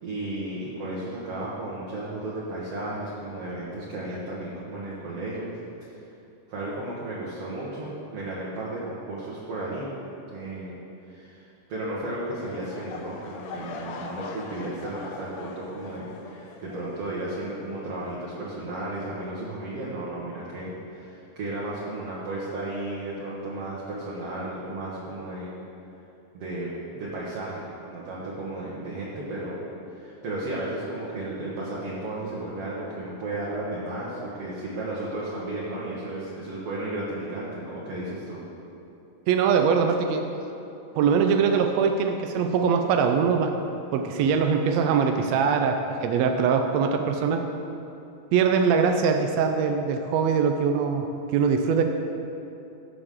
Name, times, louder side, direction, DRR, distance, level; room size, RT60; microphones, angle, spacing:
voice 1, 0.0-5.5 5.8-6.1 6.5-9.9 10.3-10.8 11.1-11.4 11.7-25.6 26.3-27.6 27.9-29.6 29.9-38.4, right 2 dB, 55° right, -7 dB, 2.1 m, -34 dB
sound 1, 12.4-17.4 17.7-18.1 18.6-18.7, left 5 dB, 75° left, 1.7 m, -42 dB
voice 2, 39.3-40.2 40.9-43.5 43.9-47.4 48.3-51.8, right 6 dB, 80° right, 5 dB, 1.5 m, -22 dB
16.0 x 7.0 x 3.7 m, 2.9 s
omnidirectional pair, 3.7 m